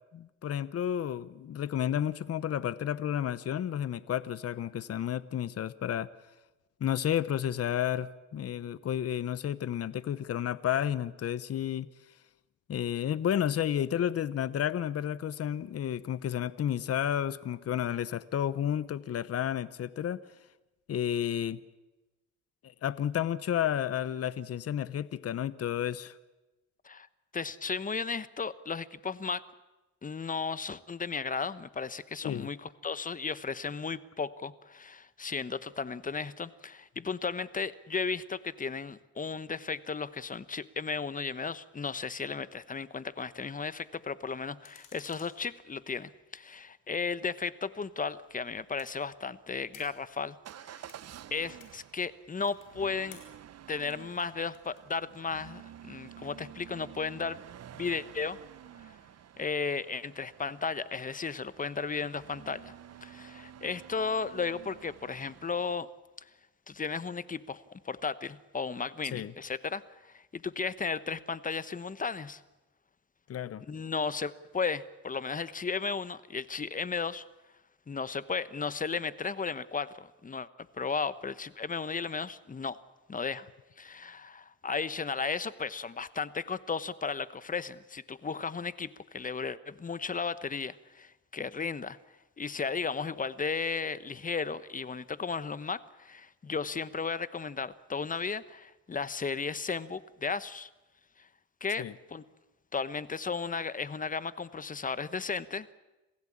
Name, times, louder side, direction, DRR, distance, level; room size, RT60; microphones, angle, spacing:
voice 1, 0.1-6.1 6.8-11.9 12.7-20.2 20.9-21.6 22.6-26.1 32.2-32.5 69.1-69.3 73.3-73.6 101.8-101.9, left 10 dB, 50° left, 17 dB, 0.9 m, -31 dB
voice 2, 27.3-29.4 30.0-50.4 50.6-50.9 51.3-53.2 53.7-57.4 57.7-58.4 58.8-59.0 59.4-62.7 63.0-65.9 66.7-72.4 73.7-77.2 77.9-80.5 80.8-82.8 83.1-83.5 83.8-92.0 92.4-100.7 101.2-101.3 101.6-101.8 102.1-102.2 102.7-105.7, left 5 dB, 25° left, 16 dB, 1.0 m, -35 dB
sound 1, 44.6-46.2 47.6-55.5, left 8 dB, 80° left, 5.3 m, -59 dB
Motor vehicle (road) / Engine starting / Accelerating revving vroom, 50.4-65.8, right 10 dB, 55° right, 0.9 m, -51 dB
27.0 x 16.5 x 8.6 m, 1.1 s
cardioid pair, 90°, 30 cm